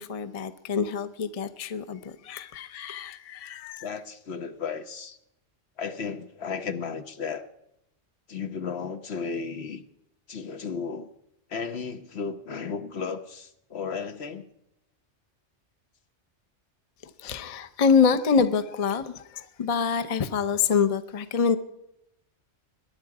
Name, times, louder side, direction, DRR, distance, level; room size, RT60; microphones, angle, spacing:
voice 1, 0.0-3.9 17.0-21.6, left 6 dB, 35° left, 0.7 m, -26 dB
voice 2, 3.8-5.2 5.8-7.5 8.3-9.8 10.3-11.1 11.5-14.5, left 5 dB, 60° left, 1.2 m, -34 dB
21.5 x 10.5 x 4.8 m
omnidirectional pair, 1.2 m